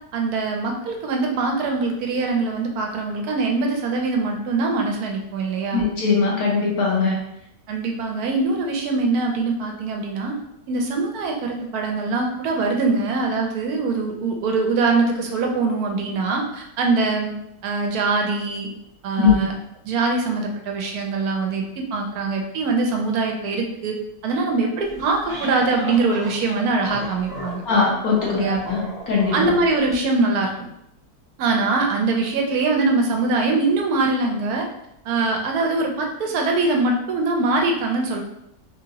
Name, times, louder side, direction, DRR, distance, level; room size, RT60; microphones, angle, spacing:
voice 1, 0.1-5.9 7.7-10.4 10.7-17.3 17.6-18.7 19.0-19.5 19.8-21.6 21.9-24.0 24.2-27.6 28.3-28.6 29.3-30.5 31.4-34.7 35.0-38.2, right 3 dB, 75° right, 2 dB, 1.1 m, -23 dB
voice 2, 5.7-7.2 19.2-19.4 27.6-28.8 29.1-29.5, left 5 dB, 65° left, -4 dB, 1.5 m, -20 dB
sound 1, 24.9-30.0, left 1 dB, 5° right, 0.7 m, -35 dB
3.6 x 2.8 x 2.8 m, 0.79 s
omnidirectional pair, 1.7 m